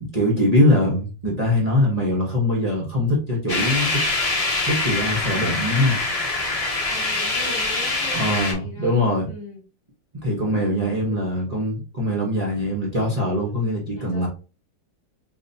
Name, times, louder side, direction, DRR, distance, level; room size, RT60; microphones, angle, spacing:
voice 1, 0.0-4.0 4.7-6.0 8.1-9.3 10.2-14.3, left 1 dB, 30° right, 0.7 m, -22 dB
sound 1, 3.5-8.5, left 2 dB, 60° left, 0.3 m, -24 dB
voice 2, 6.9-9.6 11.0-11.4 13.4-13.5 13.9-14.3, equal, 25° left, 0.7 m, -40 dB
4.0 x 3.0 x 2.6 m
omnidirectional pair, 2.0 m